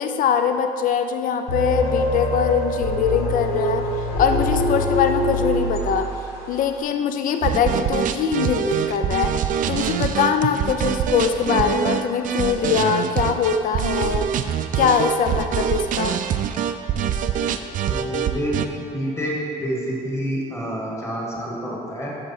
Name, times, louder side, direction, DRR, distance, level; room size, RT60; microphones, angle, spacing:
voice 1, 0.0-3.9 4.2-6.1 6.5-9.3 9.7-14.3 14.7-16.2, left 7 dB, 55° left, 7 dB, 0.5 m, -22 dB
sound 1, 1.5-6.5, left 1 dB, 70° left, 1.3 m, -24 dB
sound 2, 7.4-18.7, right 9 dB, 50° right, 0.4 m, -24 dB
voice 2, 17.9-18.6 18.9-22.1, equal, 15° left, -4 dB, 1.8 m, -28 dB
7.9 x 6.6 x 4.3 m, 2.5 s
cardioid pair, 110°, 17 cm